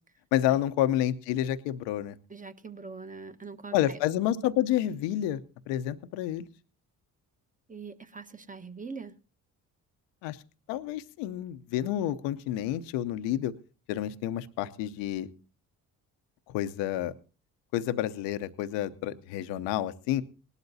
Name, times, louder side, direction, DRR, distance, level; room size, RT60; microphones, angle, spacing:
voice 1, 0.3-2.1 3.7-5.4 5.7-6.5 10.2-10.4 10.7-13.5 13.9-15.3 16.5-17.1 17.7-20.2, left 12 dB, 80° left, 11 dB, 0.9 m, -29 dB
voice 2, 2.3-4.0 7.7-9.1, right 4 dB, 20° right, 10 dB, 1.3 m, -42 dB
19.0 x 12.5 x 2.7 m, 0.36 s
hypercardioid pair, 50°, 43 cm